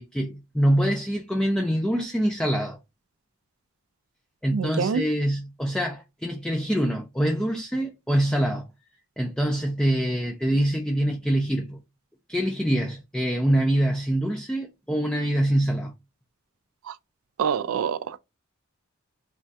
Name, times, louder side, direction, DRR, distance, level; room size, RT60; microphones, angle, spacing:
voice 1, 0.0-2.8 4.4-8.7 9.2-11.8 12.3-15.9, right 1 dB, 5° left, 0.3 m, -25 dB
voice 2, 4.5-5.0 17.4-18.2, right 6 dB, 75° right, 0.3 m, -26 dB
3.2 x 2.2 x 2.6 m
head